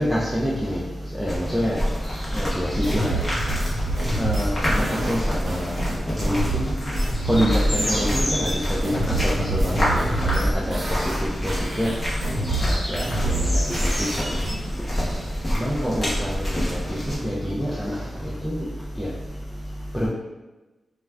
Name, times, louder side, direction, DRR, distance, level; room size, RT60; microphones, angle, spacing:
voice 1, 0.0-20.1, equal, ahead, -7 dB, 0.3 m, -28 dB
sound 1, 1.3-17.2, equal, 20° left, 0.8 m, -27 dB
sound 2, 2.8-8.2 8.5-11.2 11.5-14.5, right 1 dB, 65° right, 0.8 m, -27 dB
2.4 x 2.2 x 3.2 m, 1.1 s
wide cardioid pair, 160°, 0 cm